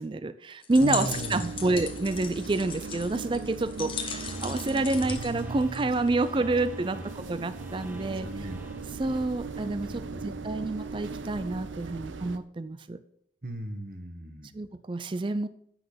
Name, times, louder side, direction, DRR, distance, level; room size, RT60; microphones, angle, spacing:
voice 1, 0.0-8.3 9.0-13.0 14.5-15.5, right 2 dB, 25° right, 13 dB, 0.4 m, -28 dB
sound 1, 0.6-6.3, left 6 dB, 30° left, 1.0 m, -38 dB
sound 2, 0.7-12.4, right 4 dB, 85° right, 0.7 m, -39 dB
voice 2, 0.8-1.7 5.0-5.9 6.9-7.1 8.1-8.7 9.9-10.4 13.4-14.5, right 1 dB, 50° right, 8 dB, 1.2 m, -37 dB
sound 3, 4.3-9.4, right 1 dB, 10° right, 0.9 m, -43 dB
8.6 x 6.1 x 6.7 m, 0.70 s
head